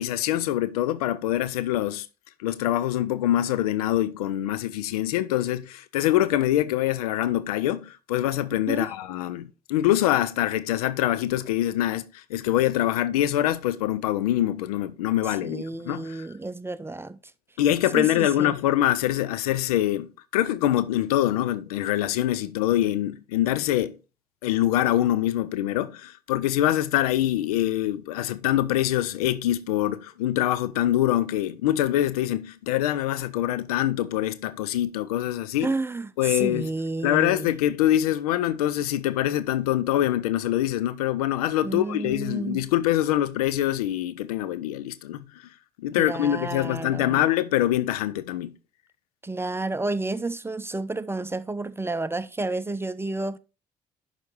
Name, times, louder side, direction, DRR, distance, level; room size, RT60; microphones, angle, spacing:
voice 1, 0.0-2.1 2.4-16.3 17.6-24.0 24.4-35.7 36.2-36.7 37.0-45.5 45.8-48.5, left 13 dB, 80° left, 0.5 m, -24 dB
voice 2, 15.4-17.2 17.9-18.6 35.6-37.5 41.6-42.6 46.0-47.3 49.2-53.4, right 2 dB, 10° right, 0.6 m, -31 dB
11.0 x 4.0 x 4.6 m
hypercardioid pair, 50°, 19 cm